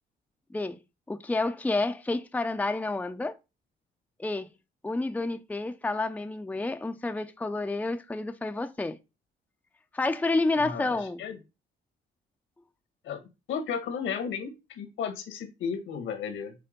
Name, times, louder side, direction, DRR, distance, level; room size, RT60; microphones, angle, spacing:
voice 1, 1.1-3.4 4.2-4.5 4.8-9.0 9.9-11.2, left 2 dB, 5° left, 0.6 m, -29 dB
voice 2, 10.6-11.4 13.0-13.2 13.5-16.5, left 6 dB, 85° left, 1.7 m, -34 dB
6.8 x 3.4 x 5.2 m
cardioid pair, 90°, 20 cm